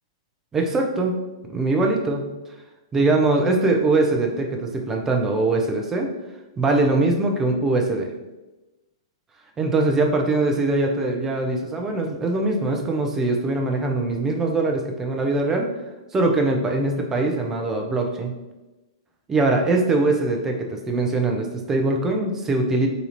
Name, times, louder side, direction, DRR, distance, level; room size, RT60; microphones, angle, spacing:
voice 1, 0.5-1.1 1.5-2.3 2.9-6.1 6.6-8.1 9.6-15.7 16.1-18.3 19.3-22.9, right 2 dB, 15° right, 2 dB, 0.7 m, -22 dB
4.1 x 2.7 x 4.2 m, 1.1 s
figure-of-eight pair, 105°, 3 cm